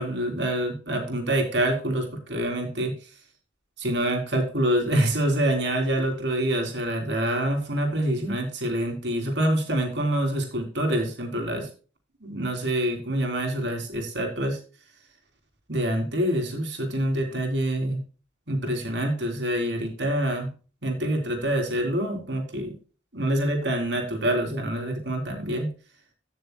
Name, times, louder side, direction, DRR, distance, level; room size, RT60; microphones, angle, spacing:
voice 1, 0.0-2.9 3.8-11.7 12.2-14.6 15.7-18.0 18.5-20.5 20.8-22.7 23.1-25.7, right 1 dB, 70° right, 3 dB, 3.2 m, -26 dB
16.0 x 6.7 x 2.2 m, 0.35 s
head